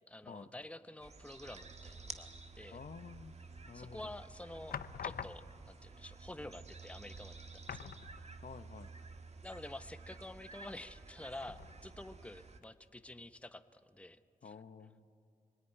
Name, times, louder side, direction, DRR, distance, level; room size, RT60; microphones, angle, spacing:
voice 1, 0.1-2.3 2.5-2.8 3.7-4.8 5.0-7.9 9.4-14.5, left 1 dB, 10° left, 10 dB, 1.0 m, -49 dB
sound 1, 1.0-12.6, right 3 dB, 45° right, 1.5 m, -52 dB
voice 2, 2.7-3.4 3.7-4.1 8.4-8.9 14.4-15.1, left 6 dB, 65° left, 10 dB, 1.1 m, -50 dB
sound 2, 3.5-3.9 4.7-5.8 6.7-6.8 7.1-7.3 7.6-8.6 9.0-9.1 11.4-12.1 12.6-12.7, left 8 dB, 85° left, 0.8 m, -46 dB
25.0 x 19.0 x 9.9 m, 2.3 s
cardioid pair, 70°, 15 cm